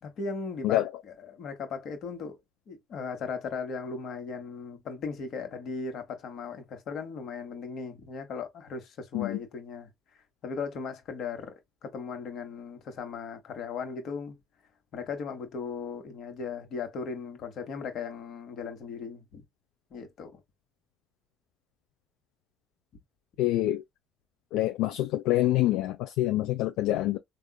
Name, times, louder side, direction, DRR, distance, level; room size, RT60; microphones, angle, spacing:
voice 1, 0.0-2.4 2.7-9.9 10.4-11.5 11.8-14.4 14.9-19.4 19.9-20.4, left 5 dB, 60° left, 1.2 m, -37 dB
voice 2, 23.4-23.8 24.5-27.2, left 15 dB, 80° left, 0.3 m, -26 dB
3.6 x 2.3 x 2.3 m
supercardioid pair, 75°, 0 cm